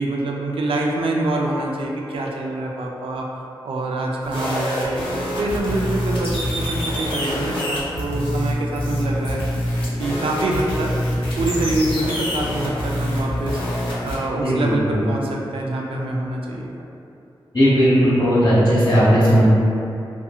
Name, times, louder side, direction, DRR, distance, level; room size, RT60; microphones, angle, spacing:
voice 1, 0.0-3.3 3.6-5.1 5.4-9.4 10.0-11.0 11.3-16.7, right 2 dB, 80° right, -1 dB, 0.4 m, -25 dB
sound 1, 4.2-14.1, equal, 70° left, 0.7 m, -25 dB
voice 2, 14.4-15.0 17.5-19.4, equal, 50° left, -10 dB, 1.0 m, -16 dB
2.6 x 2.6 x 2.3 m, 2.7 s
wide cardioid pair, 70°, 9 cm